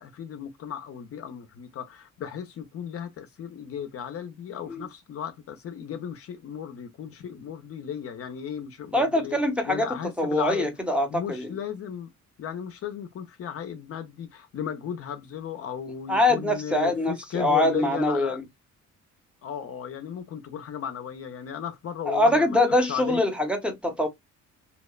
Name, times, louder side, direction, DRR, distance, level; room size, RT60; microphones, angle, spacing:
voice 1, 0.0-9.4 9.7-10.7 11.1-12.1 12.4-18.4 19.4-22.6 22.8-23.2, left 8 dB, 50° left, 0.5 m, -35 dB
voice 2, 8.9-9.9 10.2-11.5 16.1-18.4 22.1-24.1, left 1 dB, 5° right, 0.7 m, -23 dB
2.8 x 2.0 x 2.3 m
cardioid pair, 90°, 30 cm